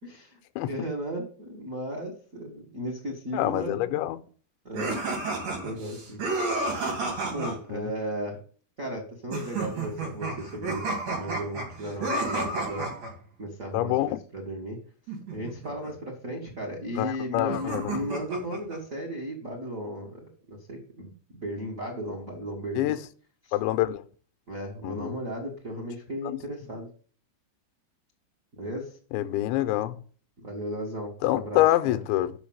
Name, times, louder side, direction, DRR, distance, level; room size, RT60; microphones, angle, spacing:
voice 1, 0.0-4.0 4.6-4.9 5.6-6.2 7.3-8.4 8.8-13.0 13.4-14.8 15.3-20.2 20.5-23.0 23.4-23.5 24.5-26.9 28.6-29.0 29.5-29.7 30.4-32.0, equal, 70° right, 0.7 m, -35 dB
voice 2, 3.3-4.2 7.7-7.9 13.7-14.2 17.0-18.0 22.8-23.0 23.5-24.0 24.8-25.1 29.1-29.9 31.2-32.3, left 15 dB, 85° left, 2.9 m, -26 dB
sound 1, 4.7-7.6 9.3-13.1 15.1-15.9 17.5-18.8, right 2 dB, 45° right, 4.6 m, -31 dB
7.0 x 6.4 x 7.2 m
omnidirectional pair, 5.1 m